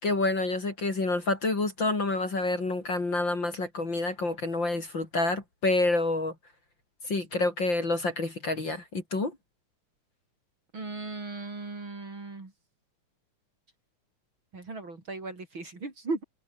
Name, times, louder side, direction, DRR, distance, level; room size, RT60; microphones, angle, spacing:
voice 1, 0.0-6.3 7.0-9.4, left 2 dB, 35° left, 4.4 m, -28 dB
voice 2, 10.7-12.5 14.5-16.2, right 3 dB, 40° right, 5.3 m, -37 dB
open air
omnidirectional pair, 3.6 m